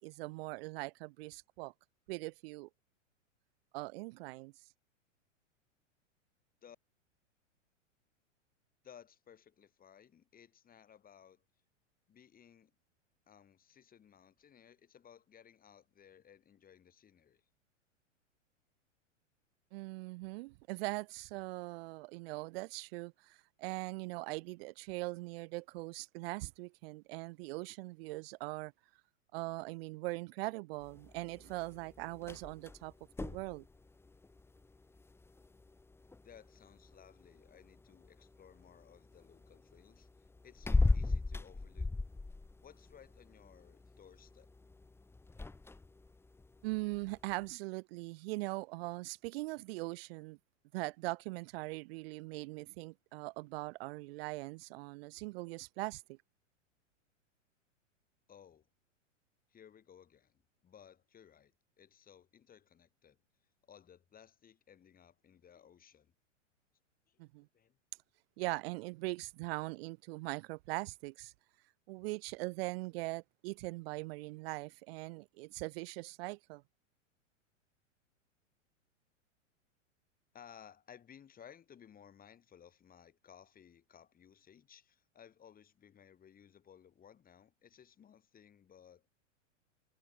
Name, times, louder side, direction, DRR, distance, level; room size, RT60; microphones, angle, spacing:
voice 1, 0.0-1.7 2.1-2.7 3.7-4.5 19.7-28.7 29.3-32.9 33.2-33.6 46.6-50.4 50.7-56.2 67.2-67.4 68.4-71.3 71.9-76.6, right 23 dB, 50° right, 1.6 m, -41 dB
voice 2, 8.8-11.4 12.1-12.7 13.3-17.4 36.2-41.9 42.6-44.5 58.3-58.7 59.5-63.2 63.6-66.1 67.1-67.2 67.5-67.8 80.3-89.0, left 8 dB, 25° left, 6.5 m, -59 dB
sound 1, 30.8-47.5, left 3 dB, 5° left, 1.4 m, -40 dB
hypercardioid pair, 115°, 38 cm